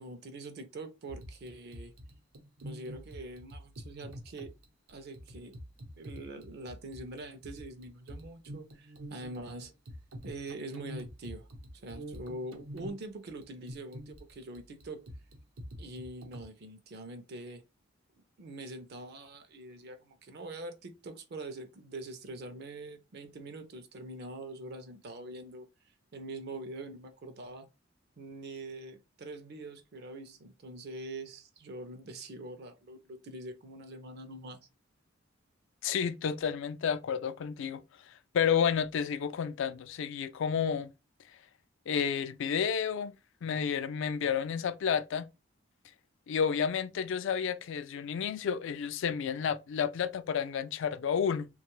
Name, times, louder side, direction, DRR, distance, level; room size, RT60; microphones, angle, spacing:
voice 1, 0.0-1.9 2.6-4.5 4.9-5.6 6.0-9.7 10.2-11.5 11.7-15.1 15.8-17.6 18.4-25.7 26.1-27.7 28.2-34.6, right 2 dB, 55° right, 0.5 m, -44 dB
sound 1, 1.1-16.4, equal, 85° right, 0.8 m, -46 dB
voice 2, 35.8-37.8 38.3-40.9 41.9-43.1 43.4-45.3 46.3-51.5, left 7 dB, 65° left, 0.3 m, -31 dB
2.9 x 2.3 x 3.0 m
head